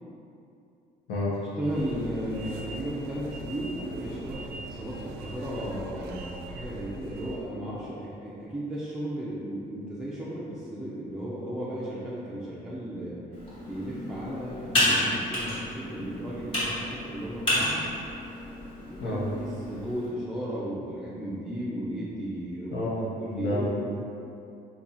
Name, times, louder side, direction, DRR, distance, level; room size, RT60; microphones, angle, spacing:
voice 1, 1.4-13.2 13.6-17.9 18.9-22.8 23.2-23.7, equal, 5° right, -8 dB, 0.4 m, -35 dB
sound 1, 1.6-7.5, right 2 dB, 70° right, 0.4 m, -41 dB
Computer keyboard, 13.3-20.1, left 1 dB, 30° left, 1.3 m, -31 dB
voice 2, 22.7-23.7, left 1 dB, 80° left, -5 dB, 0.8 m, -30 dB
2.9 x 2.3 x 3.7 m, 2.7 s
cardioid pair, 110°, 17 cm